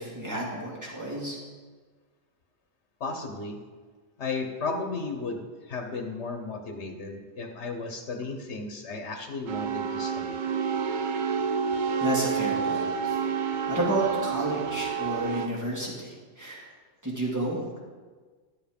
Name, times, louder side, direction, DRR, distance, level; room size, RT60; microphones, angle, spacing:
voice 1, 0.0-1.4 12.0-13.2 13.7-16.7 17.0-17.6, right 1 dB, 15° right, -5 dB, 2.8 m, -30 dB
voice 2, 3.0-3.6 4.2-10.4, left 3 dB, 80° left, 4 dB, 1.4 m, -34 dB
sound 1, 9.5-15.5, right 6 dB, 50° right, 0.7 m, -29 dB
12.5 x 7.3 x 5.4 m, 1.4 s
omnidirectional pair, 1.1 m